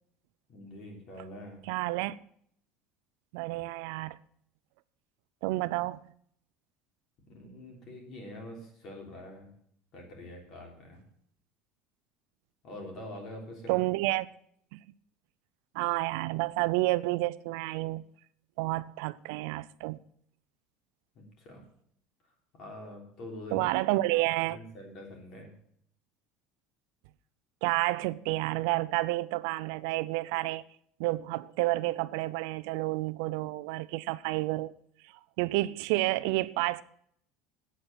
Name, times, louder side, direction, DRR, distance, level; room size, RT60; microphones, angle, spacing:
voice 1, 0.5-1.6 7.3-9.5 9.9-11.0 12.6-13.8 21.1-21.6 22.5-23.6 24.4-25.5, left 1 dB, 40° left, 3.4 m, -45 dB
voice 2, 1.7-2.2 3.3-4.2 5.4-6.0 13.7-14.3 14.7-14.8 15.7-18.0 18.6-20.0 23.5-24.6 27.6-30.6 31.0-34.7 35.4-36.8, right 19 dB, 70° right, 0.4 m, -30 dB
8.6 x 8.2 x 7.5 m
cardioid pair, 175°, 0 cm